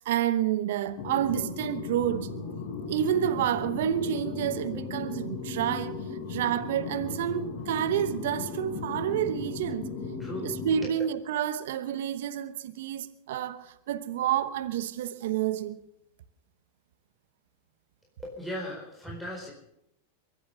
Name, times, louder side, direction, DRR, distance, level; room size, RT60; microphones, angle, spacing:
voice 1, 0.0-2.3 2.9-6.0 6.3-9.9 10.4-15.8, right 10 dB, 65° right, 1.0 m, -29 dB
sound 1, 1.0-10.9, left 4 dB, 55° left, 4.0 m, -36 dB
voice 2, 10.2-10.5 10.8-10.9 18.2-19.5, equal, ahead, 4.5 m, -37 dB
23.0 x 8.7 x 6.7 m
hypercardioid pair, 100°, 0 cm